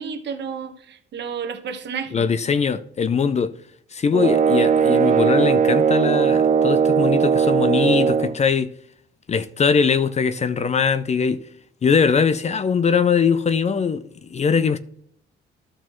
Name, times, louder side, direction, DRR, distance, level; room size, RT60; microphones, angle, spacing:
voice 1, 0.0-2.2, right 6 dB, 60° right, 1.2 m, -31 dB
voice 2, 2.1-3.5 3.9-8.7 9.3-11.4 11.8-14.8, left 6 dB, 35° left, 0.5 m, -21 dB
sound 1, 4.1-8.4, right 6 dB, 40° right, 0.4 m, -18 dB
12.0 x 6.3 x 3.1 m
cardioid pair, 90°, 20 cm